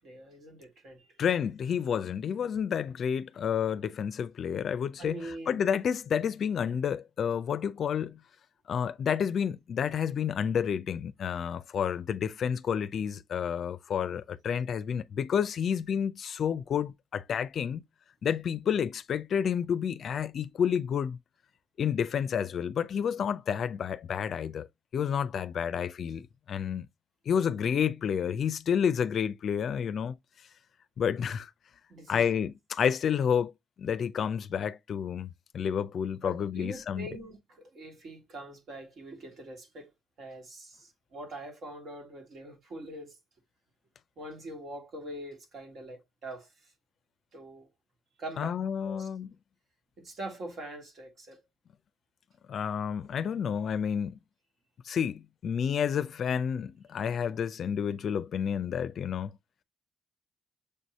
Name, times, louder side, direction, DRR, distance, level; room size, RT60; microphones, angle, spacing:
voice 1, 0.0-1.1 5.0-5.7 11.3-11.5 31.9-32.4 36.2-39.9 40.2-43.2 44.2-46.5 47.3-47.7 48.2-48.6 48.8-49.1 50.0-51.4, right 1 dB, 65° right, 1.8 m, -43 dB
voice 2, 1.2-8.2 8.7-17.8 18.2-21.2 21.8-24.7 24.9-26.9 27.3-30.2 31.0-31.5 32.1-33.5 33.8-37.1 48.4-49.3 52.5-54.2 54.8-59.4, left 8 dB, 60° left, 0.4 m, -30 dB
6.6 x 2.7 x 3.0 m
cardioid pair, 90°, 0 cm